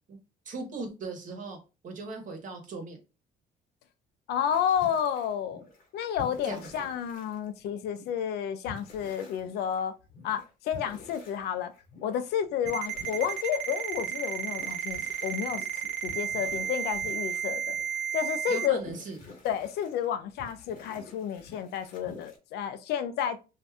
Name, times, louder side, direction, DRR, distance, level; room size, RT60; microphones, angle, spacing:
voice 1, 0.4-1.6 1.8-3.0 6.4-6.7 18.5-19.2, right 3 dB, 50° right, 1.1 m, -38 dB
voice 2, 4.3-5.6 5.9-9.9 10.2-11.7 12.0-15.7 16.0-17.8 18.1-18.8 19.4-23.4, left 9 dB, 75° left, 0.4 m, -31 dB
sound 1, 4.5-5.9 6.1-8.2 8.6-18.0 18.6-20.1 20.4-22.4, left 3 dB, 55° left, 1.0 m, -49 dB
Ringtone, 12.7-18.7, right 8 dB, 75° right, 0.5 m, -33 dB
2.6 x 2.3 x 3.3 m
cardioid pair, 110°, 17 cm